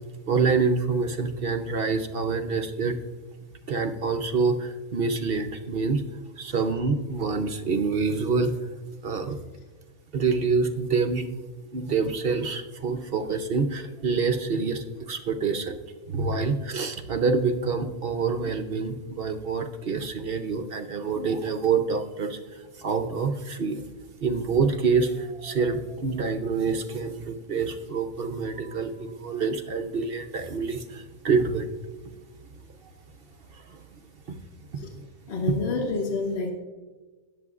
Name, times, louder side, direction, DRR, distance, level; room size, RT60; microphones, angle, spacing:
voice 1, 0.3-3.0 3.7-6.0 6.4-8.6 9.0-9.4 10.1-11.3 11.7-15.8 16.1-23.8 24.2-31.7 33.5-33.8 34.3-34.4 34.9-35.0, right 4 dB, 50° right, 7 dB, 0.7 m, -26 dB
voice 2, 35.3-36.5, left 3 dB, 45° left, 2 dB, 1.2 m, -28 dB
18.5 x 7.5 x 2.4 m, 1.3 s
omnidirectional pair, 1.6 m